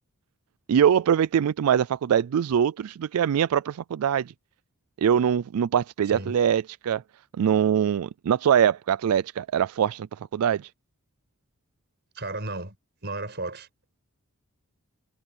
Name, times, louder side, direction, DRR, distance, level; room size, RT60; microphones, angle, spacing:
voice 1, 0.7-4.3 5.0-7.0 7.4-10.7, right 8 dB, 80° right, 0.3 m, -23 dB
voice 2, 12.1-12.8 13.0-13.7, right 2 dB, 50° right, 5.5 m, -33 dB
head